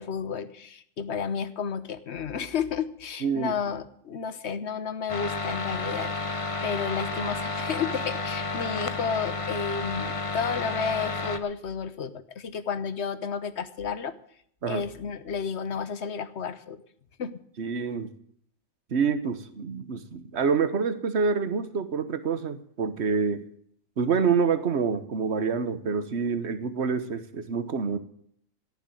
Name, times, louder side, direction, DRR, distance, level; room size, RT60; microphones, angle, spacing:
voice 1, 0.0-14.1 14.7-16.8 17.2-17.4, left 6 dB, 60° left, 13 dB, 1.2 m, -32 dB
voice 2, 3.2-3.5 14.6-14.8 17.6-18.1 18.9-23.4 24.0-28.0, right 5 dB, 55° right, 12 dB, 1.4 m, -27 dB
sound 1, 5.1-11.4, left 3 dB, 30° left, 0.9 m, -31 dB
16.5 x 7.3 x 9.1 m, 0.66 s
omnidirectional pair, 1.4 m